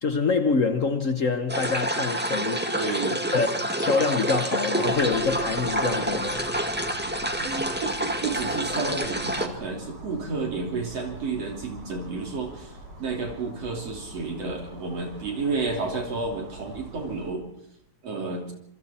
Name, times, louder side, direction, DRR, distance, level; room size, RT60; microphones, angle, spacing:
voice 1, 0.0-2.7 3.3-6.4, left 4 dB, 80° left, 0.7 m, -25 dB
sound 1, 1.5-9.5, right 1 dB, 5° right, 1.4 m, -28 dB
voice 2, 2.8-3.2 7.4-12.7 13.0-17.5 18.0-18.5, right 3 dB, 55° right, 4.2 m, -31 dB
sound 2, 4.8-17.3, right 1 dB, 80° right, 6.9 m, -44 dB
27.0 x 25.5 x 4.4 m
omnidirectional pair, 3.3 m